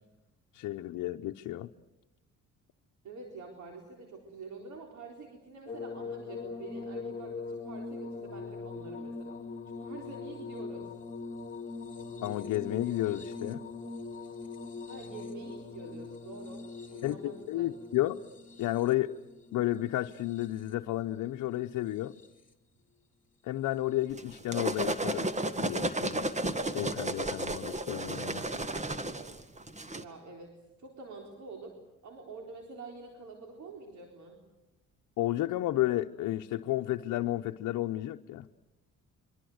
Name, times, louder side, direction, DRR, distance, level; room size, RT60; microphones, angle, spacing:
voice 1, 0.5-1.7 12.2-13.6 17.0-18.2 18.6-19.1 19.5-22.2 23.4-25.3 25.6-26.3 26.7-28.5 35.2-38.5, left 15 dB, 80° left, 0.8 m, -32 dB
voice 2, 3.0-9.4 9.7-10.9 14.9-17.7 29.9-31.8 32.0-34.4, right 4 dB, 70° right, 4.0 m, -47 dB
sound 1, 5.7-20.9 21.8-22.5 23.9-24.1, left 4 dB, 25° left, 2.8 m, -42 dB
sound 2, 24.2-30.0, right 1 dB, 25° right, 1.7 m, -33 dB
26.5 x 24.0 x 8.0 m
cardioid pair, 90°, 30 cm